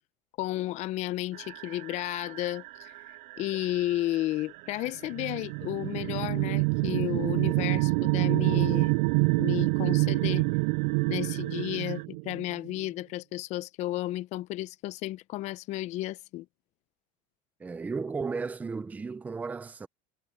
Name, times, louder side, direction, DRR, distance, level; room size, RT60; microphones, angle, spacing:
voice 1, 0.4-2.9 3.4-9.0 9.4-10.5 11.1-16.5, left 16 dB, 40° left, 0.7 m, -33 dB
sound 1, 1.3-12.1, right 17 dB, 50° right, 3.2 m, -47 dB
sound 2, 5.0-12.7, right 29 dB, 75° right, 0.4 m, -26 dB
voice 2, 17.6-19.9, right 4 dB, 10° right, 0.5 m, -34 dB
cardioid pair, 165°, 18 cm